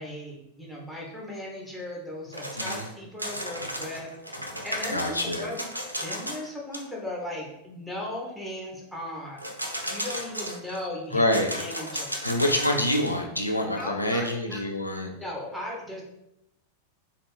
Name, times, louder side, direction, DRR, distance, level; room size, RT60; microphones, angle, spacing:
voice 1, 0.0-4.1 4.6-5.6 6.0-9.5 9.8-11.3 11.6-12.1 13.7-14.6 15.2-16.0, left 1 dB, 5° left, -4 dB, 1.1 m, -37 dB
sound 1, 2.3-2.9 3.2-6.5 6.7-6.8 9.4-10.8 11.3-13.2, equal, 85° right, 0.5 m, -34 dB
voice 2, 2.6-2.9 4.9-5.5 11.1-11.5 12.2-15.1, left 1 dB, 85° left, 2 dB, 0.4 m, -26 dB
4.2 x 2.5 x 3.1 m, 0.84 s
figure-of-eight pair, 90°, 0 cm